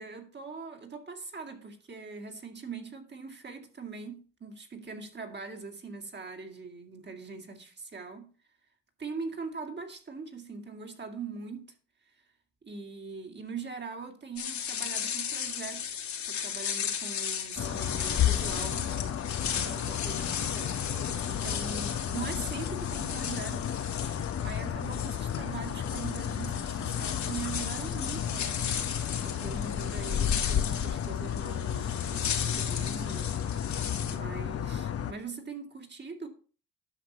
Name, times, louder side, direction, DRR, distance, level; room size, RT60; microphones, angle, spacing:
voice 1, 0.0-8.3 9.0-11.7 12.6-15.9 16.3-18.9 19.6-20.2 20.5-20.8 21.2-23.7 24.4-28.7 29.2-33.4 34.1-36.3, right 4 dB, 35° right, 2.3 m, -41 dB
sound 1, 14.4-34.2, left 8 dB, 65° left, 2.5 m, -36 dB
sound 2, 17.6-35.1, left 9 dB, 50° left, 1.0 m, -32 dB
11.0 x 6.0 x 5.6 m
cardioid pair, 90°, 30 cm